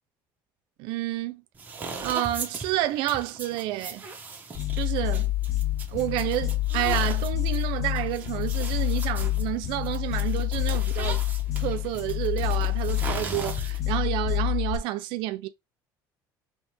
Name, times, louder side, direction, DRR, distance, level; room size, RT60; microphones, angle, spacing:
voice 1, 0.8-1.4 2.0-4.1 4.7-5.3 5.9-11.2 11.6-15.5, right 15 dB, 75° right, 0.4 m, -29 dB
sound 1, 1.6-14.0, right 4 dB, 20° right, 1.0 m, -39 dB
sound 2, 4.5-14.8, left 15 dB, 40° left, 0.6 m, -27 dB
4.5 x 2.8 x 3.2 m
cardioid pair, 155°, 9 cm